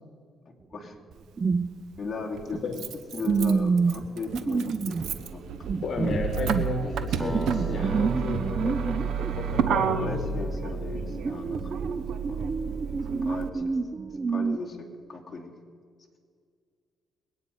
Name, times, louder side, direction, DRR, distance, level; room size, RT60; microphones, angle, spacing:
Motor vehicle (road), 1.1-1.2 2.4-13.5, right 7 dB, 75° right, 0.9 m, -31 dB
sound 1, 1.4-1.7 2.0-2.1 3.2-5.1 5.6-6.7 7.3-10.6 10.9-14.6, right 5 dB, 35° right, 0.5 m, -28 dB
voice 1, 2.0-2.6 3.1-5.4 10.0-12.0 12.3-12.4 13.2-13.8 14.3-14.8 15.1-15.5, left 4 dB, 30° left, -2 dB, 2.9 m, -37 dB
voice 2, 5.8-10.3, left 3 dB, 50° left, 2 dB, 2.0 m, -33 dB
Acoustic guitar, 7.2-12.0, right 1 dB, 10° right, 0.8 m, -40 dB
22.5 x 9.4 x 5.4 m, 2.1 s
cardioid pair, 90°, 0 cm